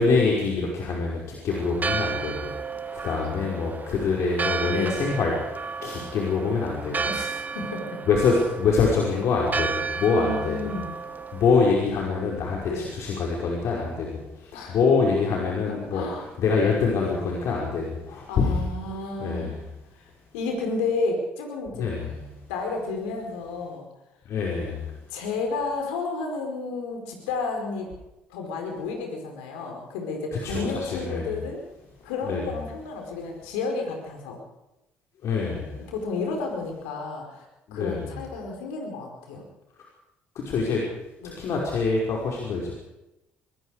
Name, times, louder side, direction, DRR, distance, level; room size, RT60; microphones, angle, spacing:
voice 1, 0.0-2.7 3.0-5.3 5.8-7.0 8.1-10.7 11.3-19.6 21.7-22.4 24.3-24.9 30.3-31.4 32.2-32.6 35.2-35.8 37.7-38.1 40.4-40.8 41.4-42.7, left 4 dB, 60° left, -2 dB, 5.4 m, -25 dB
Church bell, 1.5-11.7, right 5 dB, 30° right, 1.3 m, -33 dB
voice 2, 4.6-5.0 7.1-8.0 9.1-9.2 10.1-10.9 12.7-12.9 14.5-14.8 15.7-16.3 16.9-17.1 18.3-19.5 20.3-21.9 22.5-23.9 25.1-27.9 28.3-31.6 32.0-34.4 35.9-39.5 41.2-41.4, left 3 dB, 75° left, 2 dB, 4.8 m, -31 dB
26.5 x 20.5 x 5.1 m, 0.94 s
hypercardioid pair, 55°, 6 cm